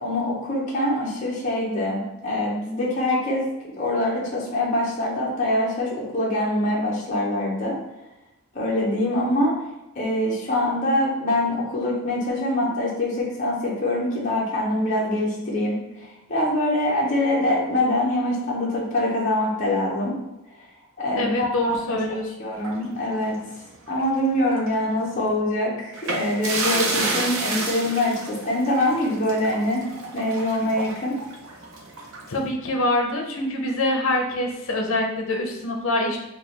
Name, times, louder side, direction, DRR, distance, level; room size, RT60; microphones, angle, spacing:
voice 1, 0.0-3.5 3.8-7.8 8.5-9.5 10.0-20.1 21.0-23.4 23.9-29.8 30.1-31.1, left 1 dB, 35° left, -5 dB, 0.9 m, -24 dB
voice 2, 21.1-22.2 32.3-36.2, left 1 dB, 70° left, 2 dB, 0.7 m, -25 dB
sound 1, 22.6-24.2 24.5-24.7 25.9-32.4, right 2 dB, 70° right, 0.7 m, -30 dB
4.6 x 2.3 x 3.3 m, 0.94 s
head